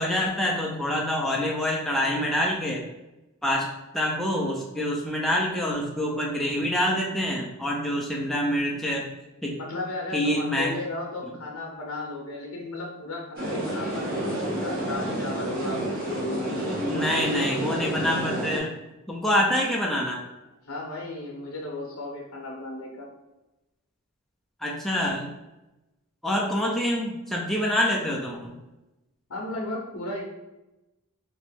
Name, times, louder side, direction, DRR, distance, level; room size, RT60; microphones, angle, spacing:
voice 1, 0.0-2.9 3.4-9.1 9.4-9.6 10.1-10.8 16.8-18.8 19.1-20.2 24.6-25.3 26.2-28.5, equal, ahead, -2 dB, 0.4 m, -26 dB
voice 2, 9.6-16.5 20.7-23.1 29.3-30.2, left 2 dB, 70° left, -1 dB, 0.7 m, -35 dB
sound 1, 13.4-18.6, right 1 dB, 45° right, 0.8 m, -30 dB
2.9 x 2.6 x 3.4 m, 1.0 s
head